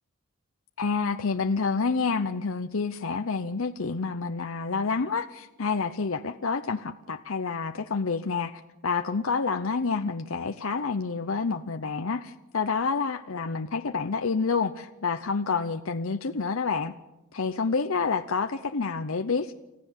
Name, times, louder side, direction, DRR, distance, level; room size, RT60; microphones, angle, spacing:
voice 1, 0.8-16.9 17.3-19.5, left 4 dB, 70° left, 8 dB, 0.8 m, -28 dB
29.5 x 15.0 x 7.3 m, 0.96 s
head